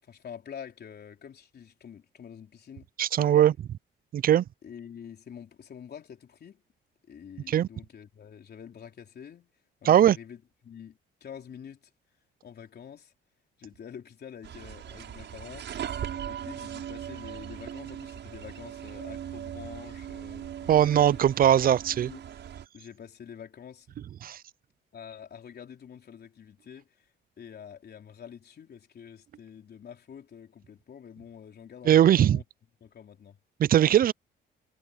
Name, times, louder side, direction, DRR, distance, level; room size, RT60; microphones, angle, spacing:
voice 1, 0.0-2.9 3.2-3.5 4.6-6.6 7.1-9.5 9.8-11.9 12.4-13.1 13.6-15.7 16.3-21.2 21.6-22.2 22.7-24.0 24.9-27.1 27.4-32.4 32.8-33.4, left 8 dB, 55° left, 4.0 m, -46 dB
voice 2, 3.0-3.5 4.1-4.4 7.5-7.7 9.8-10.2 20.7-22.1 24.2-24.4 31.9-32.4 33.6-34.1, right 11 dB, 50° right, 0.4 m, -20 dB
sound 1, 14.4-22.7, right 9 dB, 65° right, 6.8 m, -39 dB
cardioid pair, 90°, 20 cm